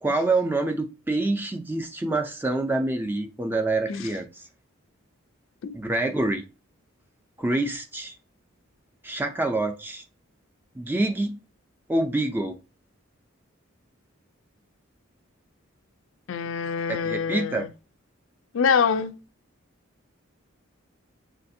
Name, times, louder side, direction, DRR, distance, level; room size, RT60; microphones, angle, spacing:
voice 1, 0.0-4.5 5.7-6.4 7.4-8.1 9.0-10.0 10.8-11.4 11.9-12.6 16.9-17.7, right 2 dB, 10° right, 0.4 m, -26 dB
voice 2, 16.3-17.7 18.5-19.2, left 6 dB, 65° left, 0.4 m, -25 dB
6.7 x 2.5 x 2.6 m
head